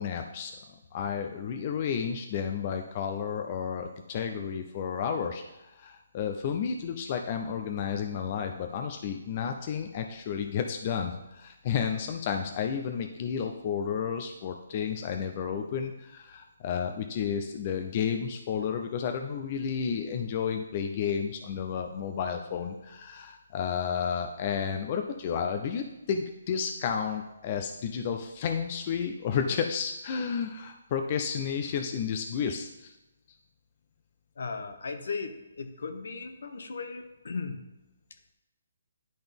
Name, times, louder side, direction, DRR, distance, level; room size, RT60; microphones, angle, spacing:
voice 1, 0.0-32.9, left 7 dB, 30° left, 4 dB, 0.4 m, -32 dB
voice 2, 34.4-37.6, left 4 dB, 70° left, 7 dB, 0.9 m, -37 dB
10.5 x 3.9 x 3.5 m, 0.98 s
hypercardioid pair, 165°, 0 cm